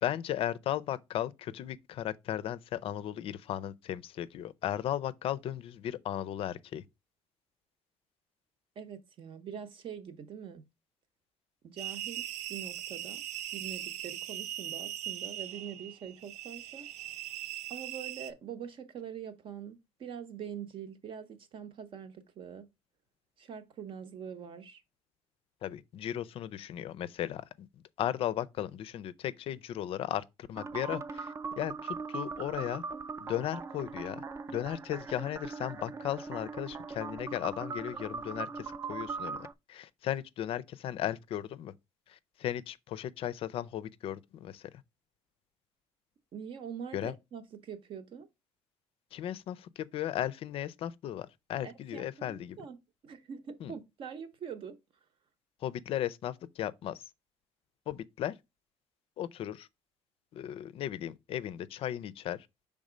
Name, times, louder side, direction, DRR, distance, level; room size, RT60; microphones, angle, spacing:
voice 1, 0.0-6.8 25.6-27.7 28.0-32.8 33.2-39.4 39.7-41.7 42.1-44.7 46.9-47.1 49.1-52.6 53.6-53.7 55.6-57.0 57.9-58.3 59.2-59.7 60.3-62.5, left 11 dB, 55° left, 0.4 m, -36 dB
voice 2, 8.8-10.6 11.6-13.2 13.5-16.9 17.7-22.7 23.4-24.8 46.3-48.3 51.6-52.8 53.0-54.8, right 7 dB, 50° right, 0.9 m, -44 dB
sound 1, 11.8-18.3, right 12 dB, 85° right, 0.6 m, -40 dB
sound 2, 30.6-39.5, right 4 dB, 25° right, 0.3 m, -40 dB
5.3 x 3.6 x 5.0 m
cardioid pair, 140°, 11 cm